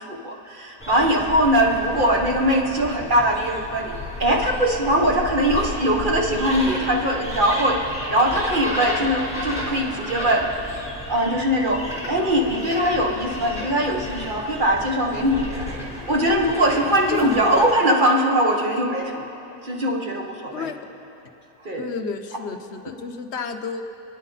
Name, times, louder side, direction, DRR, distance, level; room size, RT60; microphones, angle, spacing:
voice 1, 0.0-3.9 4.2-7.8 8.1-10.5 11.1-15.7 16.1-19.2 19.6-20.7 21.6-21.9, equal, 30° right, 1 dB, 1.3 m, -21 dB
sound 1, 0.8-17.8, left 1 dB, 5° left, 3.2 m, -33 dB
voice 2, 17.0-17.8 20.5-20.8 21.8-23.8, left 5 dB, 50° left, 6 dB, 0.9 m, -31 dB
29.5 x 9.8 x 4.1 m, 3.0 s
omnidirectional pair, 1.8 m